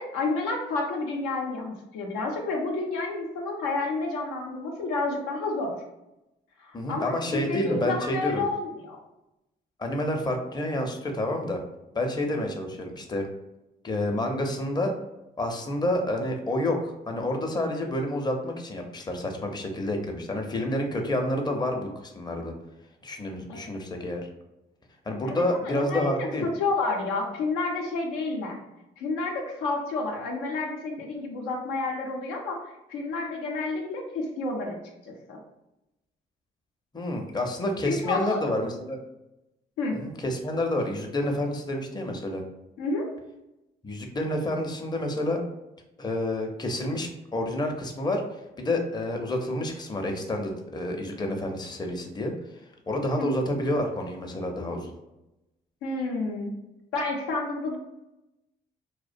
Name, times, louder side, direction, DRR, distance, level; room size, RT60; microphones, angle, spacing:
voice 1, 0.0-5.7 6.6-9.0 23.5-23.6 25.3-28.6 29.0-34.8 35.3-35.4 37.9-38.4 39.8-40.0 42.8-43.1 53.2-53.3 55.8-56.5 56.9-57.8, left 3 dB, 90° left, 0 dB, 0.5 m, -30 dB
voice 2, 6.7-8.5 9.8-11.6 11.9-13.3 13.8-15.0 15.4-22.5 23.0-24.2 25.1-26.5 36.9-39.0 39.9-42.4 43.8-45.4 46.0-48.2 48.6-52.3 52.9-54.9, left 1 dB, 20° left, 3 dB, 0.5 m, -29 dB
2.3 x 2.1 x 2.5 m, 0.93 s
supercardioid pair, 55°, 21 cm